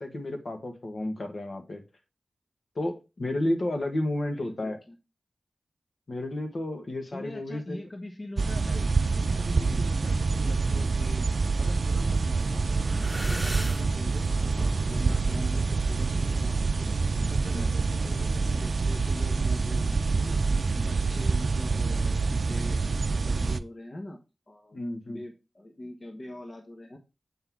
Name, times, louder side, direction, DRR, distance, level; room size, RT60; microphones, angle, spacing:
voice 1, 0.0-1.8 2.7-4.8 6.1-7.8 9.6-9.8 15.0-15.1 17.5-17.7 20.7-20.8 24.7-25.2, left 1 dB, 65° left, 1.4 m, -32 dB
voice 2, 4.3-5.0 7.1-8.9 9.1-11.2 11.6-12.8 13.1-16.9 17.3-20.4 20.8-22.8 23.1-24.2 24.5-27.0, left 1 dB, 45° left, 1.2 m, -42 dB
sound 1, 8.4-23.6, right 4 dB, 65° right, 0.4 m, -26 dB
sound 2, 10.3-10.7 11.2-12.2 12.5-18.7, right 1 dB, 10° right, 1.4 m, -41 dB
7.7 x 3.8 x 4.6 m
cardioid pair, 40°, 0 cm